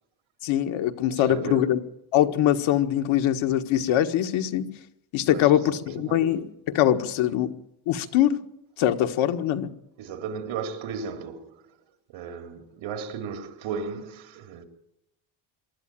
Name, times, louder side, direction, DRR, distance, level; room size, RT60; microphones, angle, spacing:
voice 1, 0.4-1.8 2.1-4.7 5.1-7.5 7.9-8.4 8.8-9.7, left 11 dB, 90° left, 1.7 m, -23 dB
voice 2, 1.1-1.8 5.2-6.3 10.0-11.7 12.1-14.6, right 6 dB, 80° right, 3.3 m, -35 dB
24.0 x 12.5 x 9.0 m
cardioid pair, 180°, 47 cm